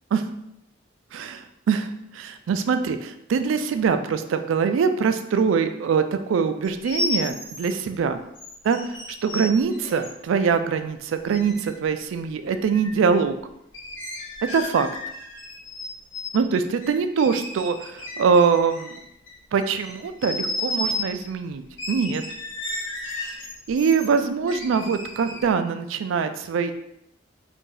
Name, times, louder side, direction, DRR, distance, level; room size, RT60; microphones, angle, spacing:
voice 1, 1.1-8.2 8.6-8.8 9.2-13.3 14.5-14.9 16.3-19.0 19.5-22.2 23.7-26.7, right 6 dB, 80° right, 9 dB, 0.3 m, -23 dB
sound 1, 6.6-7.8 8.4-10.1 11.3-11.7 12.5-13.0 13.7-15.8 16.1-16.4 16.8-19.3 19.6-21.1 21.8-24.1 24.5-25.5, left 2 dB, 80° left, 1.0 m, -33 dB
2.7 x 2.6 x 3.8 m, 0.80 s
head